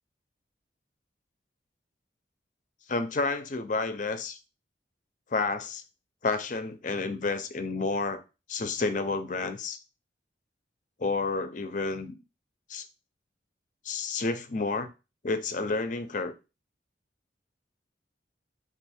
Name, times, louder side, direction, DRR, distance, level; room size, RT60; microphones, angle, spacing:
voice 1, 2.9-4.4 5.3-5.8 6.2-8.2 8.5-9.8 11.0-12.2 12.7-12.8 13.8-14.9 15.2-16.3, left 3 dB, 40° left, 0.5 m, -30 dB
4.6 x 2.5 x 4.2 m
head